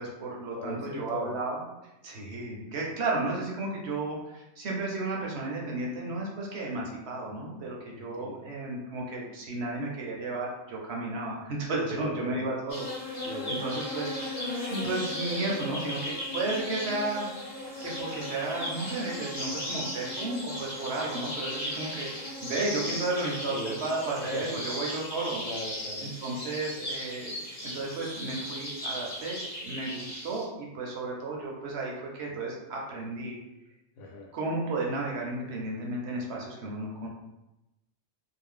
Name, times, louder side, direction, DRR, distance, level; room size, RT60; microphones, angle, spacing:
voice 1, 0.0-1.6 2.0-14.3 14.5-17.3 17.8-22.1 22.4-25.5 26.0-33.4 34.3-37.1, right 2 dB, 65° right, -2 dB, 0.8 m, -33 dB
voice 2, 0.6-1.4 7.9-8.5 11.8-12.5 13.2-13.6 23.5-23.8 24.2-24.6 25.4-26.1 27.4-27.5 34.0-34.3, left 2 dB, 75° left, 0 dB, 0.9 m, -39 dB
sound 1, 12.7-30.4, left 1 dB, 40° left, 0.8 m, -36 dB
2.5 x 2.0 x 3.6 m, 0.94 s
omnidirectional pair, 1.3 m